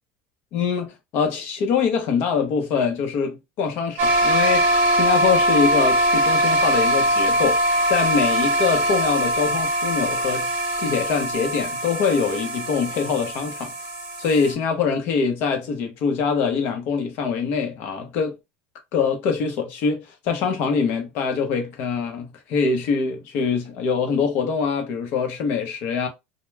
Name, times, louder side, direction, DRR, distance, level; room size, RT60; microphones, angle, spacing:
voice 1, 0.5-10.5 10.8-13.7 14.2-18.4 18.9-26.1, left 5 dB, 45° left, 0.7 m, -24 dB
sound 1, 4.0-14.5, right 1 dB, 40° right, 0.8 m, -22 dB
2.2 x 2.1 x 3.2 m
cardioid pair, 170°, 5 cm